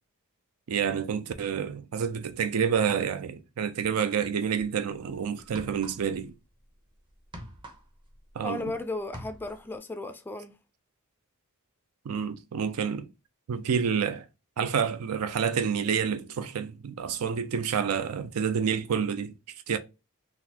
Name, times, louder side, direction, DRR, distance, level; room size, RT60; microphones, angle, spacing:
voice 1, 0.7-6.3 8.4-8.7 12.1-13.1 13.5-14.3 14.6-19.3 19.7-19.8, right 7 dB, 80° right, 0.4 m, -28 dB
sound 1, 5.4-6.3 6.6-8.7 9.0-9.7, equal, 20° right, 0.6 m, -44 dB
voice 2, 8.4-10.5, left 2 dB, 10° left, 0.3 m, -35 dB
3.9 x 2.4 x 2.8 m
head